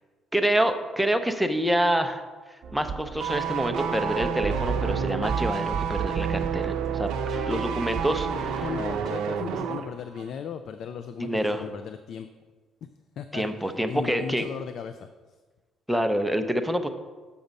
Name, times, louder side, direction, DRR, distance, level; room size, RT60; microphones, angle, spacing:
voice 1, 0.3-2.2 2.7-7.1 7.5-8.6 11.2-11.6 13.3-14.4 15.9-16.9, right 1 dB, ahead, 7 dB, 0.6 m, -26 dB
sound 1, 2.6-9.1, right 6 dB, 45° right, 0.9 m, -33 dB
sound 2, 3.2-9.9 10.1-10.3, right 7 dB, 85° right, 0.5 m, -30 dB
voice 2, 8.0-12.3 13.2-15.1, left 7 dB, 65° left, 10 dB, 0.3 m, -37 dB
7.0 x 5.4 x 5.2 m, 1.4 s
cardioid pair, 105°, 0 cm